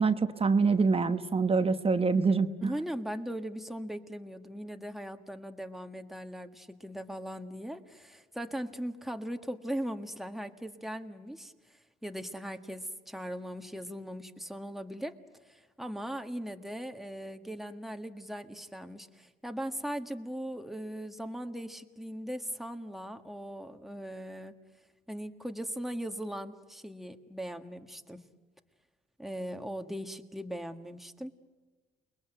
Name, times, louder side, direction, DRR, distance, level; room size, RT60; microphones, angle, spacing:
voice 1, 0.0-2.7, right 4 dB, 30° right, 9 dB, 1.1 m, -25 dB
voice 2, 2.6-15.2 15.4-24.5 25.1-28.2 29.2-31.3, equal, ahead, 5 dB, 1.7 m, -39 dB
29.0 x 21.5 x 9.1 m, 1.3 s
cardioid pair, 90°, 20 cm